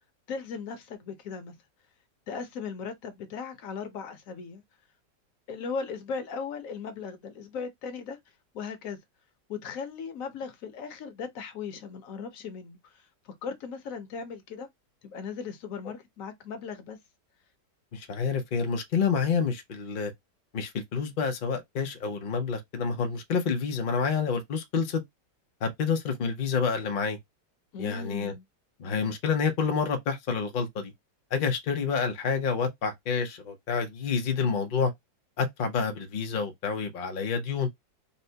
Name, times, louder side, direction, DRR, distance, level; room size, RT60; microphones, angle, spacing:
voice 1, 0.3-1.5 2.3-4.6 5.5-8.2 8.5-9.0 9.5-12.9 13.2-14.7 15.0-17.0 27.7-28.4, left 5 dB, 60° left, 0.9 m, -37 dB
voice 2, 17.9-20.1 20.5-25.0 25.6-27.2 27.8-28.3 28.8-30.9 31.3-34.9 35.4-37.7, left 5 dB, 85° left, 0.4 m, -28 dB
4.2 x 2.1 x 2.7 m
omnidirectional pair, 1.9 m